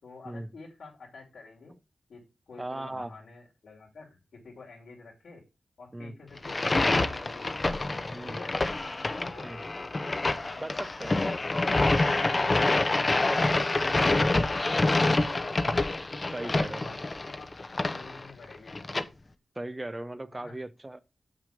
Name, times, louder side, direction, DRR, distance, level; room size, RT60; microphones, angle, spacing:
voice 1, 0.0-1.8 2.1-5.4 5.8-7.6 8.2-8.6 9.1-9.5 10.2-12.6 13.0-15.9 16.4-18.9 20.3-20.6, left 3 dB, 90° left, 2.8 m, -48 dB
voice 2, 2.6-3.1 5.9-6.1 8.1-8.4 9.4-9.6 10.6-11.2 13.2-13.5 15.6-15.7 16.3-16.9 19.6-21.0, right 1 dB, 20° right, 0.6 m, -38 dB
sound 1, 6.4-19.0, left 2 dB, 30° left, 0.8 m, -27 dB
7.3 x 6.2 x 5.0 m
wide cardioid pair, 110°, 0 cm